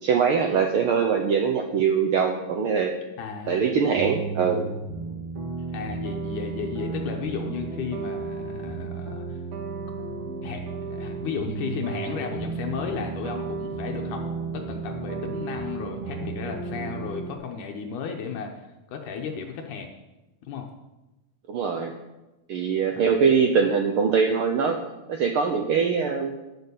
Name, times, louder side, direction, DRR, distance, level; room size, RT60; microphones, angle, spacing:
voice 1, 0.0-2.9 3.5-4.7 21.5-21.9 22.5-24.8 25.1-26.4, right 6 dB, 85° right, 4 dB, 1.2 m, -22 dB
voice 2, 3.2-3.8 5.7-9.4 10.4-14.2 14.5-19.9 20.4-20.7 22.9-23.4, left 6 dB, 80° left, 2 dB, 2.5 m, -34 dB
sound 1, 3.9-17.3, right 4 dB, 45° right, 2.6 m, -33 dB
10.0 x 7.0 x 8.3 m, 1.0 s
omnidirectional pair, 3.6 m